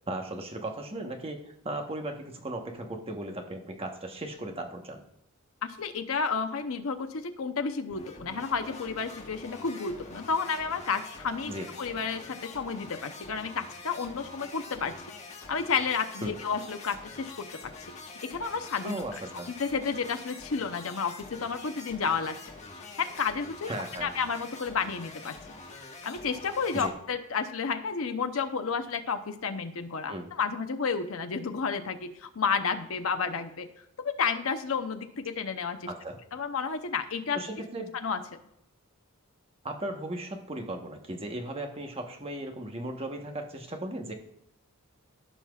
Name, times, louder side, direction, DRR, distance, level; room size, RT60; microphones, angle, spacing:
voice 1, 0.1-5.0 11.5-11.7 16.2-16.3 18.8-19.5 23.7-24.1 26.7-26.9 30.1-30.3 35.9-36.2 37.3-37.9 39.6-44.1, right 1 dB, 25° right, 4 dB, 1.1 m, -36 dB
voice 2, 5.6-11.5 11.8-15.1 15.5-17.9 18.2-19.0 19.6-22.4 23.0-23.7 24.0-25.4 26.0-33.7 34.0-35.9 36.3-37.4 37.9-38.2, left 5 dB, 70° left, 7 dB, 0.7 m, -31 dB
sound 1, 7.9-26.9, left 3 dB, 30° left, 1.4 m, -45 dB
15.5 x 5.8 x 2.4 m, 0.81 s
head